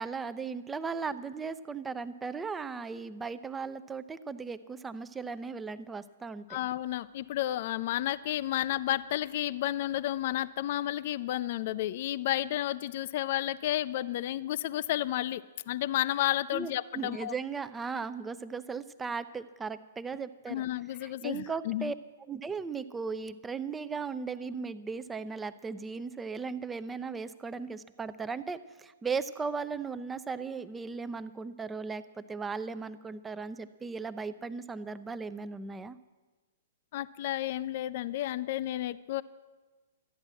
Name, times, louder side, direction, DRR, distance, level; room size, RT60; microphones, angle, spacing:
voice 1, 0.0-6.4 16.5-20.6 21.0-21.9 22.3-36.0, right 5 dB, 10° right, 13 dB, 0.5 m, -37 dB
voice 2, 6.5-17.3 20.5-21.9 36.9-39.2, left 13 dB, 45° left, 17 dB, 0.4 m, -32 dB
13.0 x 9.6 x 7.6 m, 1.3 s
figure-of-eight pair, 115°, 0 cm